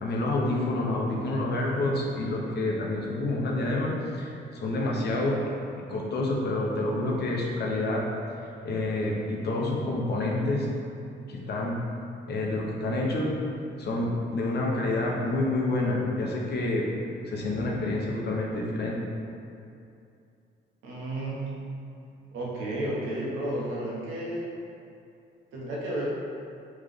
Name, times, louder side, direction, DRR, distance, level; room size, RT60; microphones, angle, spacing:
voice 1, 0.0-5.4 5.9-8.1 8.6-10.7 11.3-11.8 12.3-13.3 13.8-16.9 17.3-19.1, left 2 dB, 55° left, -2 dB, 0.8 m, -28 dB
voice 2, 20.8-21.4 22.3-24.5 25.5-26.1, right 1 dB, 85° right, -5 dB, 0.9 m, -32 dB
3.6 x 3.2 x 3.4 m, 2.6 s
cardioid pair, 90°, 20 cm